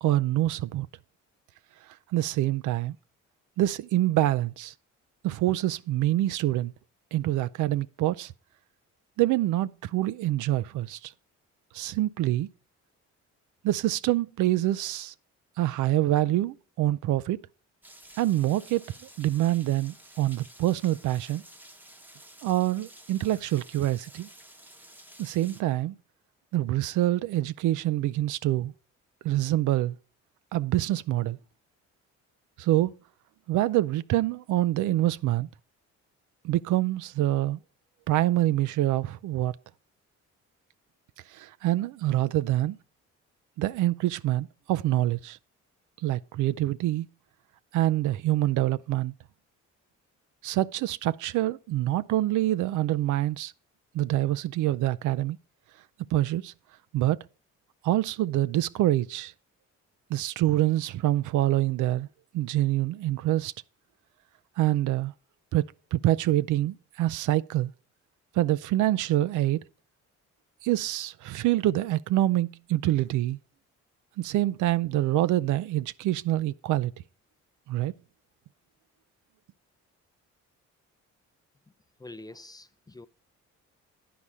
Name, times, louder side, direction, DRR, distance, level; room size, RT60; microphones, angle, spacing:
voice 1, 0.0-0.9 2.1-3.0 3.6-4.7 5.2-6.7 7.1-8.3 9.2-11.1 11.7-12.5 13.6-15.1 15.6-17.4 18.2-21.4 22.4-24.3 25.2-26.0 26.5-28.7 29.2-30.0 30.5-31.4 32.6-32.9 33.5-35.5 36.4-37.6 38.1-39.6 41.3-42.8 43.6-45.4 46.0-47.1 47.7-49.1 50.4-53.5 53.9-55.4 56.1-56.5 56.9-57.2 57.8-59.3 60.1-62.1 62.3-63.5 64.6-65.1 65.5-67.7 68.3-69.6 70.6-73.4 74.2-76.9 77.7-77.9, right 15 dB, 80° right, 0.5 m, -26 dB
Rain, 17.8-25.6, right 1 dB, 5° right, 0.9 m, -51 dB
voice 2, 82.0-83.1, left 2 dB, 15° left, 0.5 m, -45 dB
10.5 x 4.8 x 5.4 m
cardioid pair, 90°, 30 cm